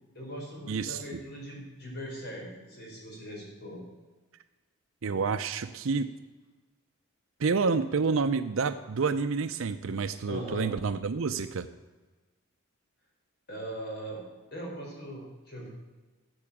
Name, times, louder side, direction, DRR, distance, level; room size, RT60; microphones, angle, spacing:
voice 1, 0.1-3.8 10.3-10.7 13.5-14.2 14.5-15.7, right 1 dB, 50° left, -2 dB, 4.4 m, -40 dB
voice 2, 0.7-1.2 5.0-6.1 7.4-11.7, right 4 dB, 65° right, 10 dB, 0.5 m, -29 dB
13.5 x 7.9 x 7.2 m, 1.3 s
head